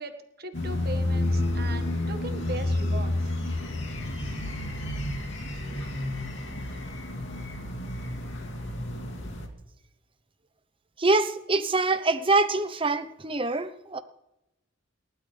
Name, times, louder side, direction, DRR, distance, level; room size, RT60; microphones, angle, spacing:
voice 1, 0.0-3.3, right 2 dB, 50° right, 7 dB, 1.7 m, -39 dB
sound 1, 0.5-9.5, left 1 dB, 65° left, 2.5 m, -30 dB
voice 2, 11.0-14.0, right 3 dB, 25° right, 11 dB, 0.9 m, -25 dB
29.0 x 12.5 x 3.4 m, 0.92 s
head